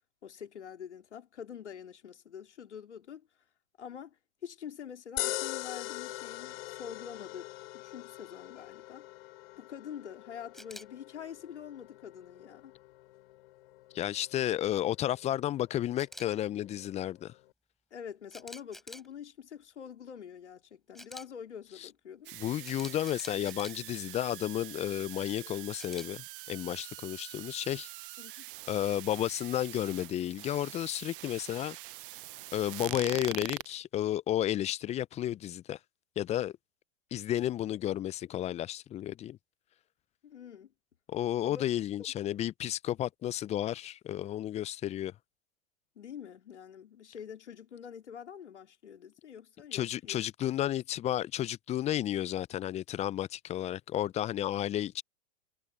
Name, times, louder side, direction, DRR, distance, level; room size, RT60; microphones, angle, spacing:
voice 1, 0.2-3.3 3.8-4.2 4.4-9.1 9.6-12.7 17.9-22.3 25.5-25.6 28.2-28.5 40.2-40.7 41.4-41.6 46.0-50.2, left 8 dB, 75° left, 3.4 m, -46 dB
sound 1, 5.2-17.5, left 17 dB, 55° left, 3.5 m, -43 dB
Camera, 10.5-10.8 16.0-16.3 18.3-19.1 20.9-21.2 22.6-23.7 25.8-26.1, equal, ahead, 7.6 m, -47 dB
voice 2, 13.9-17.3 21.8-21.9 22.3-27.9 28.7-31.8 32.5-35.8 36.2-36.5 37.1-39.4 41.1-45.1 49.7-55.0, left 12 dB, 20° left, 0.6 m, -32 dB
sound 2, 22.2-33.6, right 19 dB, 50° right, 0.7 m, -44 dB
hypercardioid pair, 105°, 35 cm